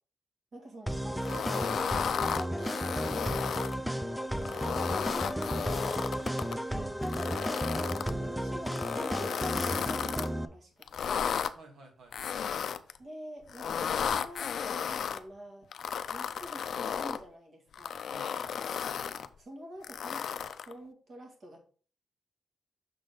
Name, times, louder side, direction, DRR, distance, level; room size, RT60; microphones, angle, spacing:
voice 1, 0.5-3.4 4.0-5.6 6.7-7.6 8.1-11.4 13.0-15.7 16.1-18.1 19.4-21.6, right 1 dB, 45° right, 1 dB, 1.9 m, -48 dB
sound 1, 0.9-10.4, equal, ahead, 0.4 m, -33 dB
sound 2, 1.2-3.8 4.3-6.6 7.0-8.1 8.7-10.3 10.8-11.5 12.1-13.0 13.5-15.2 15.7-17.2 17.7-19.3 19.8-20.7, left 7 dB, 60° left, 0.4 m, -34 dB
voice 2, 11.6-12.4 18.1-18.8, right 3 dB, 75° right, 3 dB, 1.9 m, -54 dB
6.3 x 4.0 x 5.1 m, 0.42 s
wide cardioid pair, 160°, 0 cm